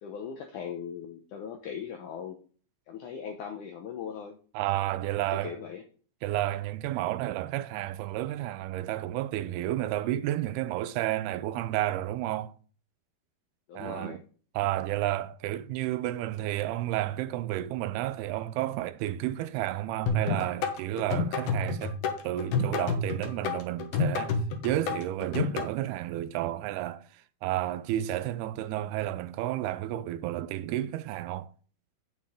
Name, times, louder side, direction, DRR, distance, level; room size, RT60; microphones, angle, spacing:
voice 1, 0.0-2.4 2.9-4.4 5.3-5.8 13.7-14.2, left 7 dB, 80° left, 1.8 m, -39 dB
voice 2, 4.5-5.6 6.2-12.5 13.7-14.2 14.5-22.0 22.2-24.4 24.6-27.0 27.4-31.5, right 14 dB, 80° right, 2.4 m, -31 dB
sound 1, 20.1-25.7, left 4 dB, 65° left, 2.1 m, -29 dB
9.1 x 7.5 x 3.7 m
omnidirectional pair, 4.7 m